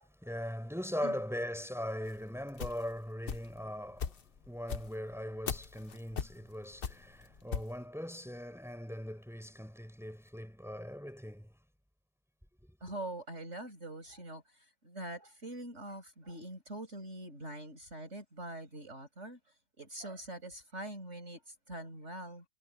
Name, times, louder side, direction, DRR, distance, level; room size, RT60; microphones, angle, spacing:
voice 1, 0.1-11.5, equal, ahead, 6.6 m, -40 dB
sound 1, 2.0-3.6 4.0-7.8, left 6 dB, 45° left, 1.0 m, -39 dB
voice 2, 12.8-19.4 19.8-22.4, right 1 dB, 55° right, 7.0 m, -44 dB
omnidirectional pair, 1.5 m